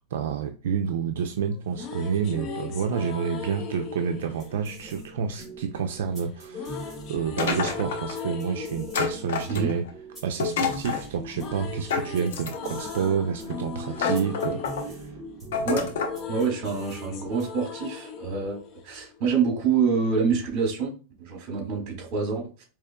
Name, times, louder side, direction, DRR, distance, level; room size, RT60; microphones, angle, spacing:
voice 1, 0.1-9.8 10.2-15.1, right 7 dB, 85° right, 5 dB, 0.4 m, -29 dB
sound 1, 1.5-5.6 6.5-10.7 11.0-19.5, left 5 dB, 40° left, 0.6 m, -39 dB
sound 2, 4.3-17.7, right 3 dB, ahead, 2.1 m, -44 dB
sound 3, 7.4-8.2 8.9-9.9 10.4-11.1 11.9-12.8 13.5-13.6 14.0-14.8 15.5-16.2, left 5 dB, 85° left, 0.8 m, -28 dB
voice 2, 16.3-20.9 21.2-22.6, right 5 dB, 45° right, 2 dB, 1.8 m, -26 dB
4.8 x 2.8 x 2.2 m, 0.34 s
supercardioid pair, 150°, 0 cm